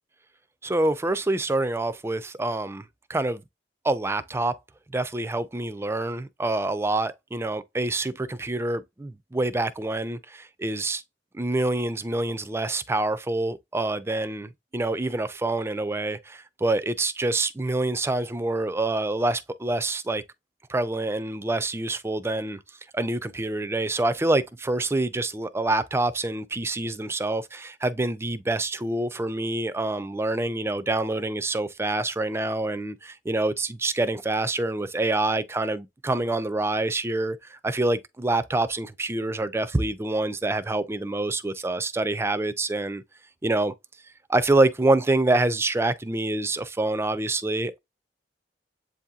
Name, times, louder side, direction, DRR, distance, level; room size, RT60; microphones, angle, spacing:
voice 1, 0.6-2.8 3.1-3.4 3.8-4.5 4.9-11.0 11.3-20.2 20.7-22.6 22.9-43.0 43.4-43.7 44.3-47.8, right 2 dB, 15° right, 0.4 m, -26 dB
7.9 x 2.8 x 2.3 m
head